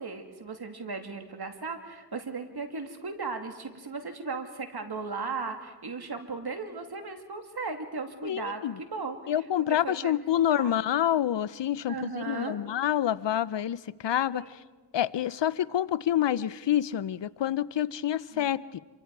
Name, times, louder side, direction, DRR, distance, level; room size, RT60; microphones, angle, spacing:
voice 1, 0.0-10.8 11.9-12.6 14.3-14.6 18.3-18.5, right 4 dB, 60° right, 5 dB, 2.6 m, -37 dB
voice 2, 8.2-8.7 9.3-13.8 14.0-14.4 14.9-18.8, left 11 dB, 75° left, 18 dB, 0.7 m, -27 dB
27.0 x 24.5 x 4.8 m, 1.3 s
cardioid pair, 40°, 44 cm